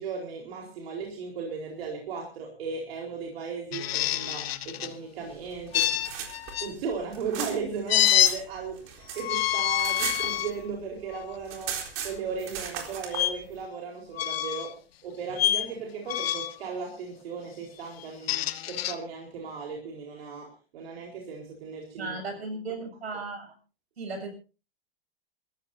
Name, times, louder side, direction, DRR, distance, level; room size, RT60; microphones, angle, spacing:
voice 1, 0.0-6.0 6.6-11.8 12.0-22.1, right 5 dB, 70° right, 4.5 m, -36 dB
sound 1, 3.7-4.9 5.7-6.7 7.9-8.3 9.2-10.5 11.1-11.3 13.1-13.3 14.1-14.7 15.4-15.7 16.1-16.6 18.0-18.9, left 13 dB, 70° left, 1.6 m, -26 dB
sound 2, 5.5-8.4 8.7-10.8 11.1-11.2 11.4-13.3, right 8 dB, 45° right, 4.2 m, -37 dB
voice 2, 22.0-23.6 24.0-24.3, right 3 dB, 90° right, 7.2 m, -36 dB
27.5 x 14.5 x 2.7 m
hypercardioid pair, 120°, 31 cm